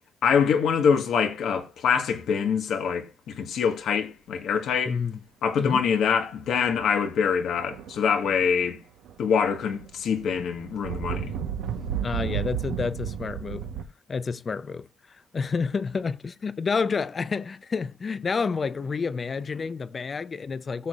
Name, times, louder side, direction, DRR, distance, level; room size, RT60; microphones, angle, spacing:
voice 1, 0.2-5.0 5.4-8.8 9.2-11.3, left 6 dB, 70° left, 1.5 m, -24 dB
voice 2, 4.9-5.2 5.6-5.8 12.0-13.6 14.1-14.9 15.3-20.9, left 5 dB, 40° left, 0.6 m, -29 dB
sound 1, 5.7-5.9 6.5-7.0 7.5-8.7 9.1-13.8, right 9 dB, 90° right, 1.1 m, -33 dB
17.0 x 6.5 x 2.5 m
cardioid pair, 90°, 0 cm